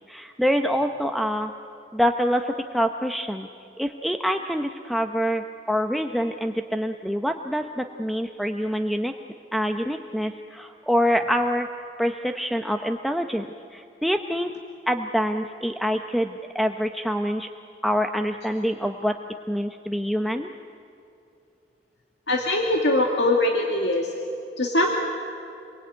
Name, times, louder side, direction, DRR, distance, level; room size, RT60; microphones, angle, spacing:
voice 1, 0.1-1.5 1.9-3.5 3.8-9.1 9.5-11.7 12.0-14.5 14.9-17.5 17.8-19.2 19.5-20.5, equal, ahead, 4 dB, 0.8 m, -25 dB
voice 2, 22.3-24.1 24.6-24.9, left 1 dB, 75° left, 1 dB, 2.3 m, -22 dB
28.0 x 22.5 x 9.4 m, 2.8 s
head